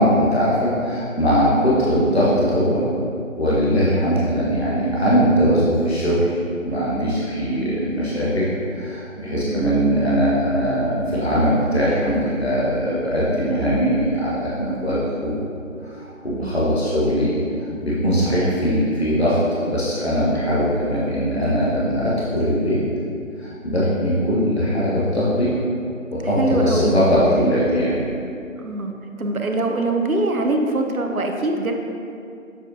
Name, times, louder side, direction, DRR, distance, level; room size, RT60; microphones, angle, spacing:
voice 1, 0.0-2.8 3.4-6.4 6.6-8.5 8.7-15.4 15.8-17.3 17.8-19.4 19.6-22.8 23.4-25.5 26.1-28.0, equal, 50° left, -8 dB, 1.2 m, -20 dB
voice 2, 26.4-27.3 28.6-28.9 29.2-31.7, right 2 dB, 85° right, 3 dB, 0.8 m, -23 dB
7.2 x 5.1 x 2.7 m, 2.5 s
figure-of-eight pair, 175°, 41 cm